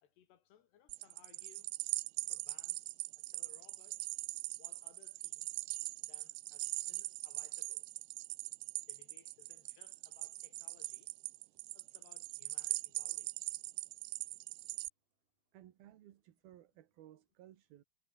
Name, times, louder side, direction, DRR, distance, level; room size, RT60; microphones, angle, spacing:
voice 1, 0.0-1.7 2.3-4.0 4.6-5.5 6.0-7.9 8.9-11.1 11.7-13.6, left 10 dB, 85° left, 4.4 m, -65 dB
sound 1, 0.9-14.9, right 21 dB, 85° right, 2.7 m, -41 dB
voice 2, 15.5-17.8, right 12 dB, 70° right, 3.2 m, -58 dB
omnidirectional pair, 4.7 m